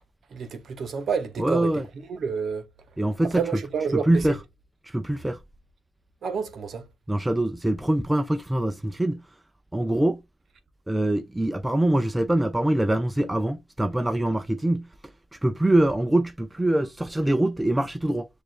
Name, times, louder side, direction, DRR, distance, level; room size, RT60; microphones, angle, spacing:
voice 1, 0.3-2.7 3.2-4.4 6.2-6.9, right 6 dB, 55° right, 0.8 m, -29 dB
voice 2, 1.4-1.8 3.0-3.4 3.9-4.4 4.8-5.4 7.1-9.2 9.7-10.2 10.9-14.9 15.3-18.3, right 1 dB, 10° right, 0.4 m, -24 dB
6.6 x 2.4 x 2.4 m
cardioid pair, 90°, 0 cm